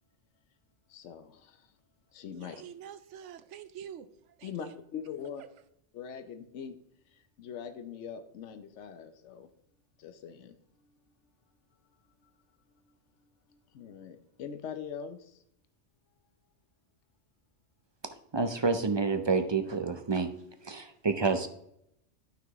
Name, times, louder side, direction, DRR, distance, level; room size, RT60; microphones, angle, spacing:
voice 1, 0.9-1.7 2.1-2.6 4.4-5.4 5.9-6.8 7.1-9.5 10.0-10.6 12.2-12.3 13.5-15.4, left 7 dB, 85° left, 9 dB, 1.0 m, -42 dB
voice 2, 2.4-4.7, right 9 dB, 90° right, 13 dB, 1.0 m, -47 dB
voice 3, 18.3-20.3 20.6-21.5, right 4 dB, 35° right, 7 dB, 0.5 m, -28 dB
11.5 x 5.9 x 3.1 m, 0.76 s
omnidirectional pair, 1.2 m